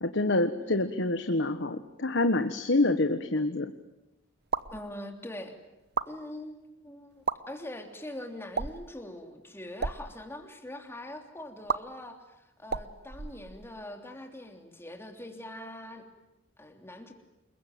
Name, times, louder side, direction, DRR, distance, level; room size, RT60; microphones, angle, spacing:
voice 1, 0.0-3.7, left 2 dB, 60° left, 8 dB, 1.4 m, -27 dB
voice 2, 0.6-1.0 4.7-5.5 6.1-12.2 12.6-16.1 16.6-17.1, left 1 dB, 10° left, 4 dB, 3.2 m, -43 dB
sound 1, 4.4-4.8 5.8-6.1 7.1-7.4 8.5-8.9 9.7-10.0 11.7-11.8 12.6-13.8, right 5 dB, 55° right, 1.0 m, -32 dB
28.5 x 22.0 x 9.3 m, 0.94 s
head